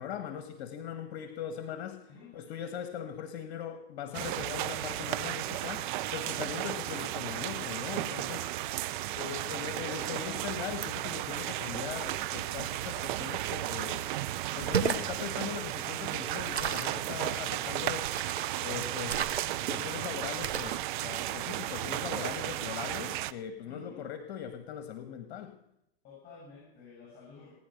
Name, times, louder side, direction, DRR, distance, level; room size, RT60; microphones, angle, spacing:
voice 1, 0.0-8.5 9.2-14.1 14.6-18.1 18.6-19.2 19.7-25.6, left 8 dB, 55° left, 8 dB, 1.6 m, -40 dB
sound 1, 4.1-23.3, right 15 dB, 50° right, 0.7 m, -34 dB
voice 2, 8.6-9.2 17.0-17.2 17.6-17.9 23.6-24.0 26.0-27.5, left 5 dB, 30° left, -3 dB, 7.9 m, -52 dB
sound 2, 14.6-15.1 16.5-17.0 18.0-18.5 19.1-19.8 20.4-20.8, right 7 dB, 90° right, 1.3 m, -32 dB
19.0 x 9.9 x 6.6 m, 0.82 s
hypercardioid pair, 115°, 32 cm